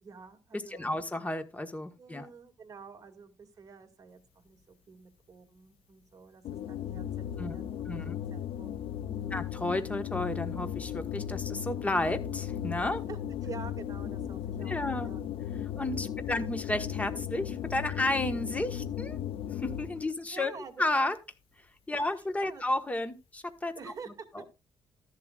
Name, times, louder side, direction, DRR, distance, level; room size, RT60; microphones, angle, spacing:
voice 1, 0.0-0.9 2.0-9.5 13.1-15.3 15.9-16.4 20.3-20.8 21.9-22.6 23.8-24.5, right 5 dB, 40° right, 5 dB, 2.3 m, -48 dB
voice 2, 0.7-2.3 7.4-7.5 7.9-8.2 9.3-13.0 14.7-15.1 15.8-19.2 19.5-20.5 20.8-21.2 21.9-23.7 24.3-24.4, left 2 dB, 15° left, 8 dB, 1.4 m, -32 dB
sound 1, 6.4-20.1, left 10 dB, 90° left, 0.7 m, -36 dB
13.5 x 11.0 x 2.5 m, 0.27 s
cardioid pair, 120°, 9 cm